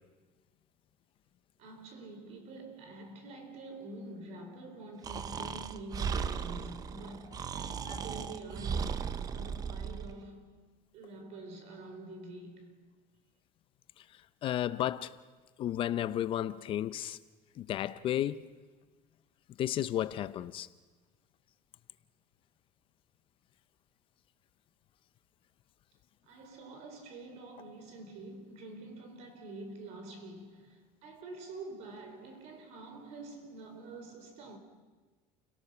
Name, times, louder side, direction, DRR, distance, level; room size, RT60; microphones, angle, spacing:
voice 1, 1.6-10.6 10.9-12.8 26.3-34.6, right 2 dB, 55° right, 4.3 m, -47 dB
Breathing, 5.0-10.1, right 7 dB, 30° right, 0.8 m, -36 dB
voice 2, 14.4-15.1 15.6-17.2 17.6-18.5 19.6-20.7, left 11 dB, 40° left, 0.7 m, -33 dB
29.0 x 18.0 x 7.0 m
cardioid pair, 145°, 13 cm